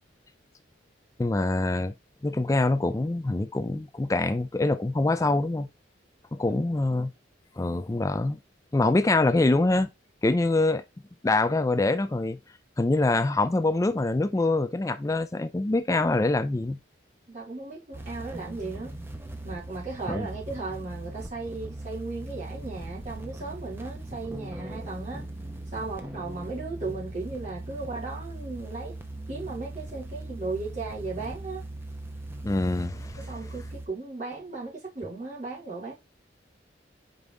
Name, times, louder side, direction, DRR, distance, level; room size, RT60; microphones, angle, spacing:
voice 1, 1.2-1.9 2.2-5.7 6.3-7.1 7.6-8.4 8.7-9.9 10.2-10.8 11.2-12.4 12.8-16.8 20.1-20.3 32.4-33.4, left 2 dB, 15° left, 0.3 m, -25 dB
voice 2, 17.3-19.0 19.4-25.2 25.7-29.0 29.3-31.6 33.2-35.9, right 3 dB, 40° right, 3.2 m, -36 dB
sound 1, 17.9-33.9, right 1 dB, 10° right, 0.8 m, -39 dB
5.3 x 4.7 x 3.8 m
head